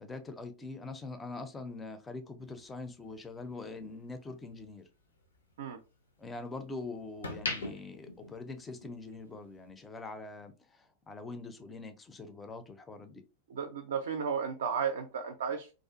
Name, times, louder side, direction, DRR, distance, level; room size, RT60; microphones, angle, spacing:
voice 1, 0.0-4.9 6.2-13.2, left 3 dB, 15° left, 0.4 m, -43 dB
sound 1, 2.4-4.7 5.1-6.6 7.0-9.1 9.4-9.7, left 2 dB, 75° left, 0.6 m, -41 dB
voice 2, 13.5-15.7, right 6 dB, 60° right, 0.3 m, -34 dB
2.4 x 2.3 x 2.5 m
figure-of-eight pair, 90°, 0 cm